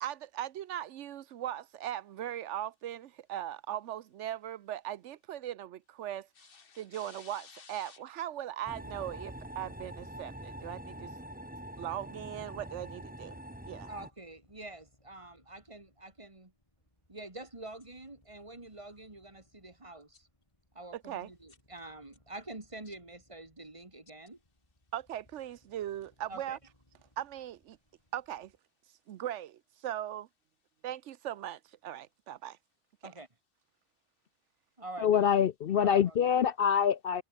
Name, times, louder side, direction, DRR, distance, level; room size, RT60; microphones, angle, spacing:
voice 1, 0.0-6.3 6.8-11.1 11.8-13.4 13.7-13.9 20.9-21.3 24.9-26.6 27.2-27.8 28.1-28.5 29.1-30.3 30.8-32.6, right 11 dB, 85° right, 1.0 m, -39 dB
sound 1, 8.6-14.1, right 1 dB, 5° right, 2.3 m, -44 dB
sound 2, 10.1-28.6, left 1 dB, 25° left, 4.3 m, -69 dB
voice 2, 13.9-16.5 17.1-20.3 20.7-24.4 26.3-26.6 33.0-33.3 34.8-35.3 35.8-36.4, right 2 dB, 25° right, 2.5 m, -46 dB
voice 3, 35.0-37.2, left 8 dB, 60° left, 0.7 m, -25 dB
omnidirectional pair, 1.2 m